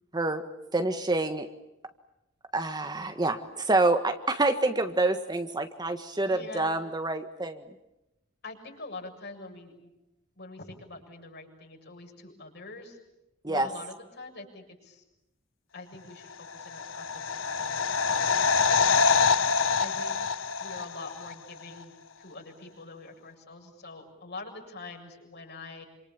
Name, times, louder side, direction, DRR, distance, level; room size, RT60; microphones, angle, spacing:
voice 1, 0.7-1.5 2.5-7.6 13.4-13.7, right 2 dB, 20° right, 7 dB, 1.6 m, -27 dB
voice 2, 6.2-6.8 8.4-9.9 10.4-13.0 13.5-15.0 15.7-19.2 19.8-20.2 20.6-25.8, left 3 dB, 55° left, 1 dB, 7.3 m, -45 dB
sound 1, 16.5-21.3 21.6-21.7, left 5 dB, 85° left, 1.0 m, -25 dB
28.0 x 26.5 x 7.2 m, 0.91 s
head